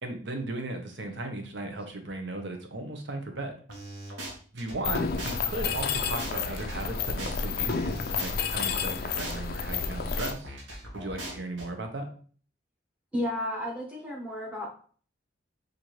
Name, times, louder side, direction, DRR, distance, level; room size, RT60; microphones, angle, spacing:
voice 1, 0.0-3.6 4.5-10.5 10.9-12.1, right 2 dB, 65° right, 5 dB, 0.8 m, -36 dB
sound 1, 3.7-4.8 5.2-5.4 5.7-8.8 9.2-9.4 9.7-11.7, right 1 dB, 85° right, 1.1 m, -40 dB
Mechanisms, 4.8-10.3, left 6 dB, 50° left, 0.3 m, -30 dB
voice 2, 13.1-14.7, left 1 dB, 5° right, -2 dB, 0.8 m, -32 dB
4.2 x 2.6 x 3.0 m, 0.43 s
head